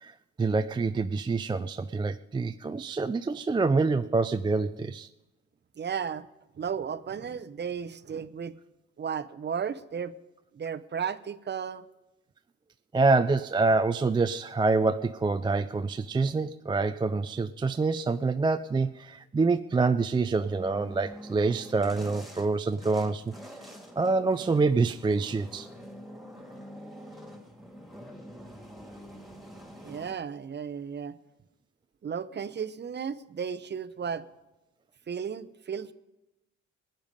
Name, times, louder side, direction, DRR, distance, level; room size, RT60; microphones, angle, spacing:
voice 1, 0.0-5.1 12.9-23.3 24.0-25.7, right 3 dB, 15° right, 10 dB, 0.4 m, -26 dB
voice 2, 5.8-6.3 6.6-8.5 9.0-10.1 10.5-11.9 29.8-31.2 32.0-34.3 35.1-35.9, right 7 dB, 35° right, 12 dB, 0.7 m, -34 dB
sound 1, 20.4-30.1, equal, ahead, 2.3 m, -46 dB
21.0 x 8.9 x 5.3 m, 1.0 s
cardioid pair, 90°, 30 cm